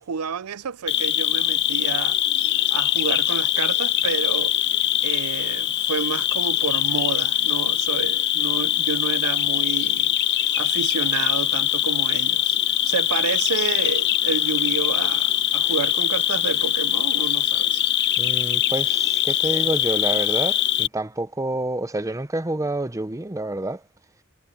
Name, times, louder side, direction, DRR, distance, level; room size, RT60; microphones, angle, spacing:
voice 1, 0.0-2.2 2.7-4.6 5.0-17.8, right 6 dB, 80° right, 0.5 m, -30 dB
Cricket, 0.9-20.9, left 11 dB, 50° left, 0.6 m, -22 dB
voice 2, 18.2-23.8, right 2 dB, 15° right, 0.8 m, -28 dB
head